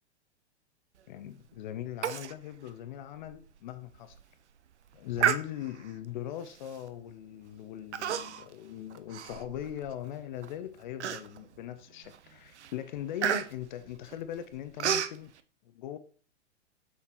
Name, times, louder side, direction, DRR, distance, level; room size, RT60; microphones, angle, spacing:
voice 1, 1.1-3.9 4.9-15.3 15.7-16.0, left 11 dB, 45° left, 11 dB, 0.5 m, -40 dB
Human voice, 2.0-2.4 2.7-2.8 3.3-3.4 4.0-4.2 5.2-5.9 6.7-6.9 7.9-8.5 8.9-9.9 10.4-10.5 11.0-11.6 12.1-12.3 12.6-15.2, right 9 dB, 75° right, 0.5 m, -31 dB
6.9 x 5.8 x 2.9 m, 0.41 s
figure-of-eight pair, 100°, 35 cm